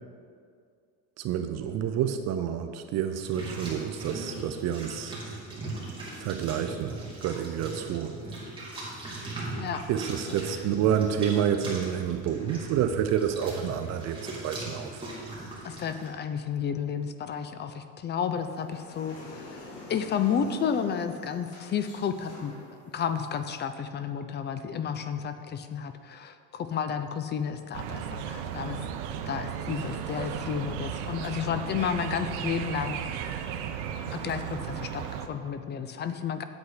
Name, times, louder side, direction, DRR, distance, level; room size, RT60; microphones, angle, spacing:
voice 1, 1.2-5.2 6.2-8.2 9.9-15.1, right 9 dB, 45° right, 8 dB, 0.6 m, -29 dB
sound 1, 3.1-16.1, right 2 dB, 15° right, 2.6 m, -39 dB
voice 2, 15.6-22.5 22.9-28.8 29.3-33.0 34.1-36.4, left 7 dB, 30° left, 10 dB, 0.6 m, -32 dB
sound 2, 18.3-23.6, left 2 dB, 45° left, 2.7 m, -47 dB
sound 3, 27.7-35.3, right 8 dB, 85° right, 0.8 m, -35 dB
8.5 x 8.0 x 5.0 m, 2.3 s
supercardioid pair, 125°, 36 cm